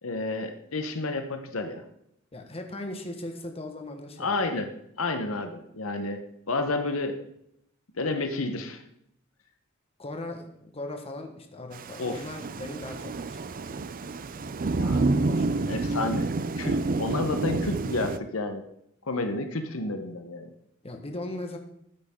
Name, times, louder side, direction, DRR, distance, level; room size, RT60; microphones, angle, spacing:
voice 1, 0.0-1.8 4.2-4.7 5.0-6.2 6.5-7.2 8.0-8.8 12.0-12.2 14.8-15.1 15.7-16.3 16.6-18.6 19.1-20.5, left 2 dB, 70° left, 7 dB, 1.2 m, -30 dB
voice 2, 2.3-4.4 10.0-13.8 14.3-14.6 15.3-15.7 20.8-21.6, left 1 dB, 30° left, 4 dB, 1.5 m, -39 dB
Thunder / Rain, 11.7-18.2, right 3 dB, 40° right, 0.5 m, -29 dB
13.0 x 9.7 x 3.8 m, 0.75 s
head